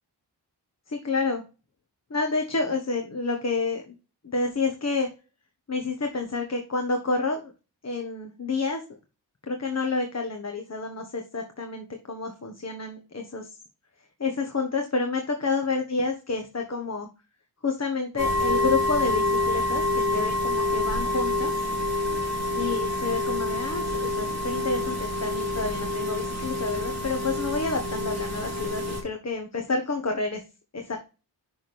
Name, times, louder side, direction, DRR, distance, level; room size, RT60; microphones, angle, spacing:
voice 1, 0.9-1.4 2.1-3.9 4.2-5.1 5.7-7.5 7.8-8.8 9.5-13.6 14.2-17.1 17.6-21.5 22.5-30.4 30.7-31.0, left 3 dB, 40° left, 3 dB, 1.3 m, -29 dB
sound 1, 18.2-29.0, left 2 dB, 40° right, 3.1 m, -27 dB
6.3 x 6.2 x 3.4 m, 0.31 s
wide cardioid pair, 75°, 41 cm